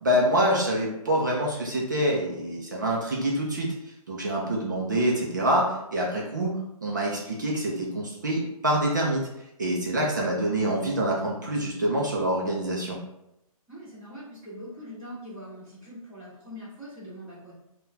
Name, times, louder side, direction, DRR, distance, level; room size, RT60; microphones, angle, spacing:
voice 1, 0.0-3.7 4.1-6.5 6.8-9.3 9.6-13.0, right 1 dB, 30° right, -3 dB, 0.4 m, -26 dB
voice 2, 13.7-17.5, equal, 10° right, -14 dB, 1.2 m, -42 dB
3.9 x 2.2 x 2.6 m, 0.86 s
hypercardioid pair, 175°, 19 cm